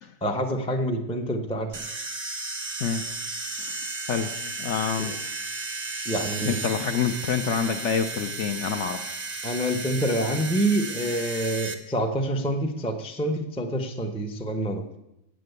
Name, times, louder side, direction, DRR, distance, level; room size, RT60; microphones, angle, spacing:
voice 1, 0.2-1.7 5.0-5.1 6.0-6.6 9.4-14.8, right 1 dB, 10° left, 3 dB, 0.4 m, -27 dB
sound 1, 1.7-11.7, right 3 dB, 35° right, 0.7 m, -34 dB
voice 2, 4.1-5.2 6.4-9.1, left 6 dB, 70° left, 7 dB, 0.6 m, -27 dB
9.0 x 7.6 x 7.9 m, 0.89 s
omnidirectional pair, 1.9 m